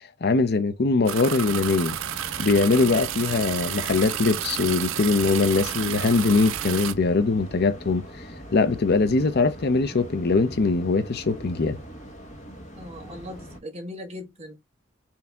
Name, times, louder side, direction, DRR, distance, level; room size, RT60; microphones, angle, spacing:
voice 1, 0.2-2.0 2.4-8.0 8.5-11.8, left 3 dB, 55° left, 0.6 m, -22 dB
sound 1, 1.1-6.9, right 11 dB, 75° right, 0.4 m, -31 dB
sound 2, 1.4-13.6, equal, 40° left, 1.2 m, -42 dB
voice 2, 12.8-14.6, left 1 dB, 30° right, 1.1 m, -39 dB
4.4 x 2.7 x 3.4 m
head